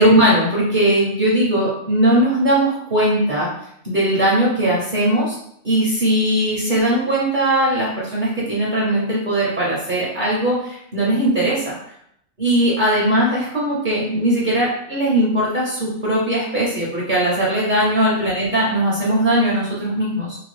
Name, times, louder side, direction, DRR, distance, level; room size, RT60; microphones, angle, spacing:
voice 1, 0.0-3.5 3.8-5.4 5.6-11.7 12.4-20.4, right 1 dB, 50° right, -5 dB, 0.7 m, -19 dB
2.8 x 2.3 x 3.0 m, 0.71 s
omnidirectional pair, 1.4 m